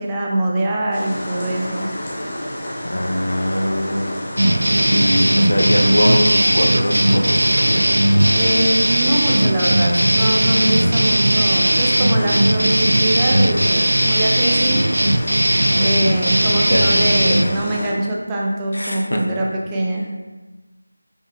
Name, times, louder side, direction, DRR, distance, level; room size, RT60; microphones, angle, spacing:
voice 1, 0.0-1.9 8.3-14.8 15.8-20.0, right 1 dB, 15° right, -3 dB, 0.4 m, -23 dB
sound 1, 0.9-17.9, equal, 20° left, 0.8 m, -30 dB
voice 2, 2.8-7.8 15.6-15.8 16.7-17.7 18.7-19.2, equal, 80° left, 2 dB, 0.6 m, -22 dB
sound 2, 4.4-17.5, right 1 dB, 85° right, 0.3 m, -17 dB
5.4 x 2.3 x 3.3 m, 1.2 s
figure-of-eight pair, 170°, 0 cm